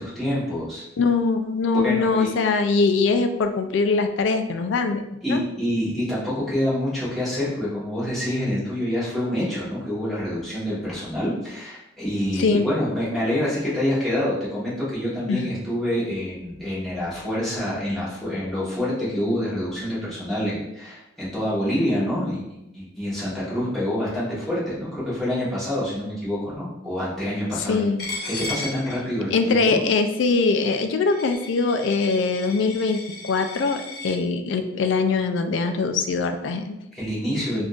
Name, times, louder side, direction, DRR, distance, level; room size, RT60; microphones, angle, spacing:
voice 1, 0.0-0.8 1.8-2.3 5.2-27.8 28.3-29.8 36.9-37.6, left 1 dB, ahead, -11 dB, 1.2 m, -27 dB
voice 2, 1.0-5.0 5.3-5.4 12.4-12.6 15.3-15.5 27.7-28.1 29.3-36.8, left 4 dB, 75° left, 7 dB, 0.3 m, -22 dB
Coin (dropping), 28.0-34.2, left 3 dB, 55° left, 0.8 m, -36 dB
3.6 x 2.5 x 2.4 m, 0.88 s
head